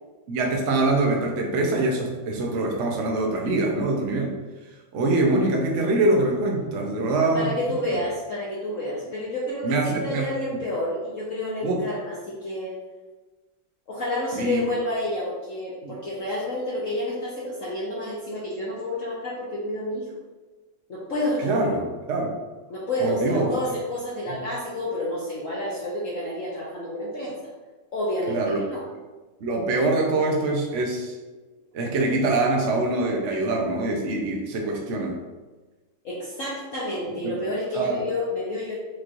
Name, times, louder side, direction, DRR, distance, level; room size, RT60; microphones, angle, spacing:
voice 1, 0.3-4.3 4.9-7.6 9.6-10.3 10.5-10.6 11.6-11.8 14.3-14.6 15.8-15.9 21.4-22.3 23.0-23.5 24.3-24.4 28.3-28.6 29.4-31.1 31.7-35.1 37.2-37.4 37.7-38.0, right 2 dB, 60° right, 0 dB, 0.8 m, -24 dB
voice 2, 7.3-12.7 13.9-20.0 20.9-21.6 22.7-27.3 27.9-28.8 36.0-38.8, left 1 dB, 55° left, -6 dB, 1.0 m, -29 dB
6.2 x 3.0 x 2.5 m, 1.2 s
omnidirectional pair, 2.0 m